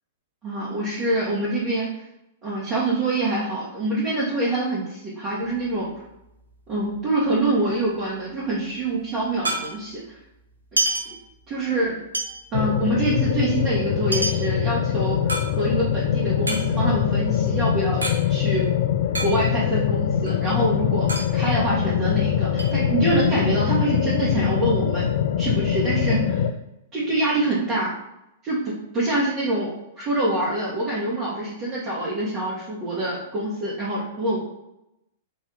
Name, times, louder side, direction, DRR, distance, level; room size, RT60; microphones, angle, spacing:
voice 1, 0.4-1.9 2.4-5.9 6.7-10.0 10.7-10.8 11.0-11.1 11.5-12.1 12.5-18.0 18.3-18.7 19.2-25.1 25.4-26.4 26.9-27.9 28.4-34.4, right 2 dB, 35° right, -8 dB, 1.3 m, -25 dB
sound 1, 5.4-7.1 7.4-7.5 7.7-10.1 10.5-11.8 12.1-16.0 16.3-18.2 18.5-18.6 18.8-19.8 20.1-22.2 22.6-23.4, right 2 dB, 85° right, 0.8 m, -30 dB
sound 2, 12.5-26.5, left 9 dB, 60° left, 0.3 m, -23 dB
4.1 x 2.7 x 3.8 m, 0.87 s
figure-of-eight pair, 105°, 0 cm